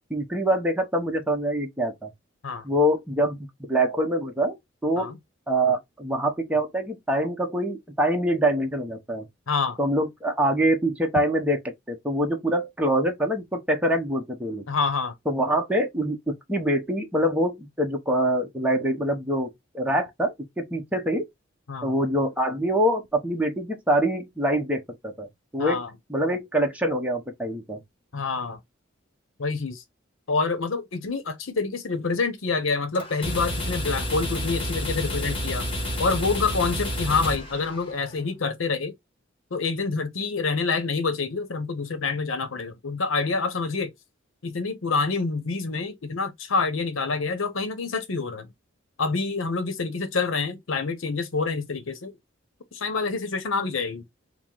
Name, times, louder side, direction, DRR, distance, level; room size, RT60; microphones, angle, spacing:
voice 1, 0.1-2.1 2.6-3.4 3.7-4.6 4.8-5.1 5.5-9.3 9.8-14.6 15.3-16.2 16.5-21.2 21.8-25.3 25.5-25.8 26.1-27.8, right 1 dB, 5° right, 0.8 m, -25 dB
voice 2, 9.5-9.8 14.7-15.1 21.7-21.9 25.6-25.9 28.1-28.6 29.4-29.8 30.3-35.7 36.0-38.9 39.5-43.9 44.4-48.5 49.0-52.1 52.7-54.0, left 4 dB, 85° left, 0.8 m, -27 dB
sound 1, 33.0-38.1, equal, 25° left, 1.2 m, -30 dB
4.5 x 2.1 x 3.7 m
head